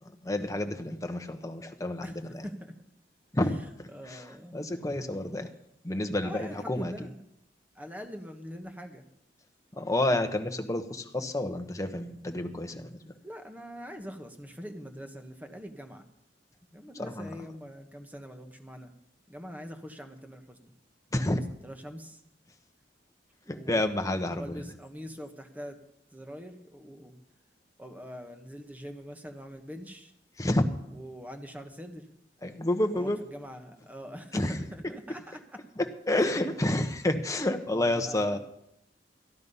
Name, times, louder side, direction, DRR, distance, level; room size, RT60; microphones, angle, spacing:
voice 1, 0.2-2.1 3.3-3.5 3.8-4.2 4.5-5.5 5.8-6.9 9.7-13.0 17.0-17.4 21.1-21.4 23.5-24.6 30.4-30.7 32.4-33.2 34.3-34.5 36.1-38.4, left 1 dB, 20° left, 7 dB, 1.0 m, -29 dB
voice 2, 2.0-2.8 3.9-4.6 6.2-7.2 7.7-9.1 13.2-16.1 16.7-18.9 19.3-20.7 21.2-22.2 23.4-25.8 26.1-27.2 27.8-30.1 30.9-32.1 32.9-35.6 36.1-36.3 37.7-38.4, equal, 10° right, 5 dB, 1.2 m, -43 dB
14.0 x 10.5 x 5.5 m, 0.81 s
head